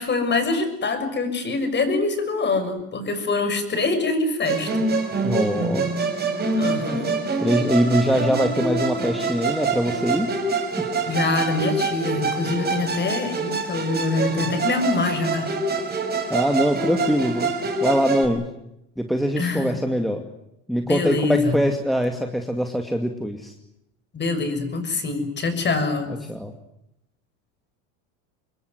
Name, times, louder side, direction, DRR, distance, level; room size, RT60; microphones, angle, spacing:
voice 1, 0.0-4.9 6.5-7.2 8.0-8.3 11.0-15.5 19.4-19.8 20.8-21.5 24.1-26.2, left 3 dB, 25° left, 9 dB, 6.5 m, -25 dB
Musical instrument, 4.4-18.3, right 3 dB, 25° right, 5.8 m, -25 dB
voice 2, 5.2-5.9 7.4-10.3 10.8-10.9 16.3-17.5 17.8-18.4 19.0-20.2 20.7-23.5 26.3-26.5, equal, ahead, 4 dB, 2.4 m, -23 dB
27.0 x 21.5 x 9.5 m, 0.82 s
supercardioid pair, 115°, 39 cm